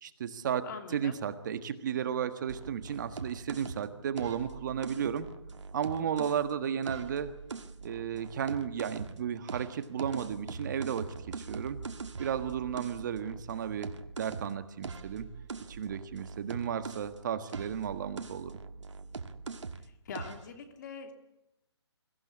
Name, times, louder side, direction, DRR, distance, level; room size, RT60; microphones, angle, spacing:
voice 1, 0.0-0.6 0.9-5.3 5.7-7.3 7.8-11.0 11.3-11.8 12.2-13.9 14.2-15.3 15.7-18.5, right 8 dB, 40° right, 10 dB, 1.5 m, -33 dB
voice 2, 0.6-1.2 19.8-21.1, left 6 dB, 40° left, 6 dB, 3.1 m, -43 dB
sound 1, 2.5-6.5 6.8-9.2 9.5-17.2 17.5-19.9 20.2-20.5, right 4 dB, 85° right, 1.8 m, -42 dB
23.5 x 15.5 x 9.8 m, 0.89 s
hypercardioid pair, 160°, 15 cm